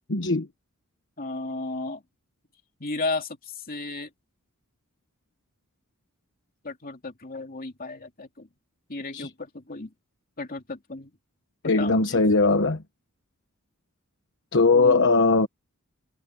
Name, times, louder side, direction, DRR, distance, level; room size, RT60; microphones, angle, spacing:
voice 1, 0.1-0.5 9.1-9.3 11.6-12.8 14.5-15.5, left 3 dB, 55° left, 1.3 m, -20 dB
voice 2, 1.2-2.0 2.8-4.1 6.6-8.5 8.9-9.9 10.4-11.1 11.8-12.2 14.7-15.1, left 3 dB, 40° left, 2.9 m, -34 dB
head